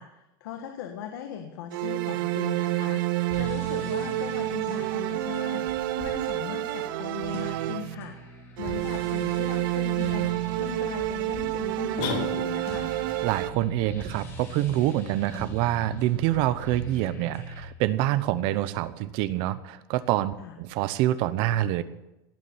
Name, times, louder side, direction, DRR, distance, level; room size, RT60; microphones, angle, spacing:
voice 1, 0.0-8.2 8.6-12.9 20.4-20.5, left 8 dB, 90° left, 4 dB, 1.7 m, -39 dB
sound 1, 1.7-8.2 8.6-13.5, right 16 dB, 75° right, 0.9 m, -29 dB
sound 2, 3.3-17.6, right 1 dB, 20° left, 3.0 m, -42 dB
sound 3, 12.0-12.9, left 5 dB, 55° left, 3.9 m, -32 dB
voice 2, 13.2-21.8, right 14 dB, 45° right, 15 dB, 0.9 m, -26 dB
18.0 x 7.2 x 8.8 m, 0.93 s
supercardioid pair, 175°, 11 cm